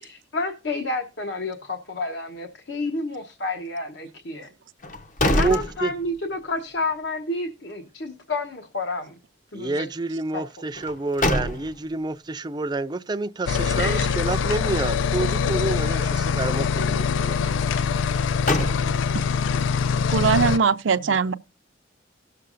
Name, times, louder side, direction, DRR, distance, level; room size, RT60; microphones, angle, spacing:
voice 1, 0.0-4.5 5.3-9.1 9.5-9.9 10.3-10.4 13.8-14.2, left 2 dB, 65° left, 1.1 m, -30 dB
sound 1, 4.8-6.4 6.8-6.9 10.7-12.0 18.0-19.3, left 1 dB, 40° left, 0.8 m, -26 dB
voice 2, 5.2-5.9 9.5-17.4, right 2 dB, 20° right, 0.4 m, -28 dB
sound 2, 13.5-20.6, left 6 dB, 80° left, 0.4 m, -23 dB
voice 3, 20.1-21.3, right 5 dB, 80° right, 0.5 m, -21 dB
18.5 x 6.7 x 2.5 m
head